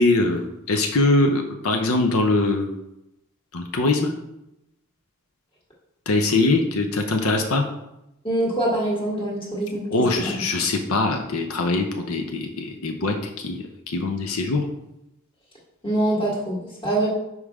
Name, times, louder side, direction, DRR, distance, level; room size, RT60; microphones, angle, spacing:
voice 1, 0.0-2.7 3.5-4.1 6.1-7.7 9.9-14.7, left 2 dB, 85° left, 4 dB, 0.7 m, -22 dB
voice 2, 8.2-9.8 15.8-17.1, right 1 dB, 25° left, -3 dB, 1.7 m, -24 dB
5.4 x 4.8 x 4.8 m, 0.88 s
head